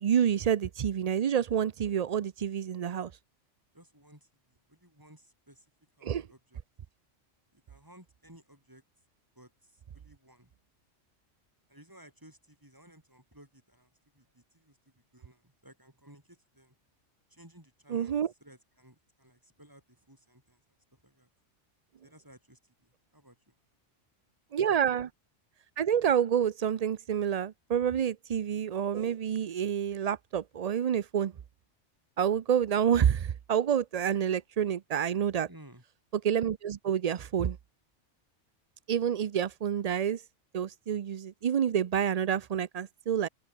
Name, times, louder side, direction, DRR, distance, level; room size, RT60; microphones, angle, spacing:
voice 1, 0.0-3.1 6.0-6.3 17.9-18.3 24.5-25.1 25.8-31.3 32.2-35.5 36.2-37.6 38.9-40.2 40.5-43.3, right 8 dB, 55° right, 0.4 m, -28 dB
voice 2, 3.7-5.7 6.0-6.6 7.5-8.8 9.3-10.5 11.7-16.7 17.3-20.6 20.9-21.3 22.0-23.5 35.5-35.8, right 1 dB, 15° right, 4.6 m, -57 dB
open air
omnidirectional pair, 1.2 m